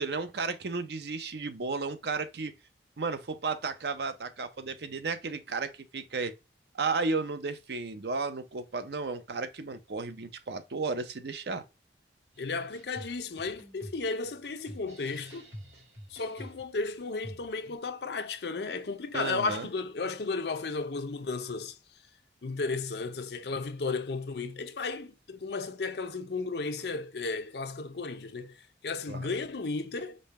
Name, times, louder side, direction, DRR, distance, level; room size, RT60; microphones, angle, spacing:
voice 1, 0.0-2.5 3.0-6.3 6.7-11.6 19.1-19.7 29.1-29.3, right 4 dB, 70° right, 0.6 m, -33 dB
sound 1, 12.3-17.8, equal, 90° right, 2.2 m, -48 dB
voice 2, 12.4-15.5 16.1-21.8 22.4-30.2, left 4 dB, 70° left, 0.6 m, -34 dB
5.3 x 2.2 x 4.1 m
head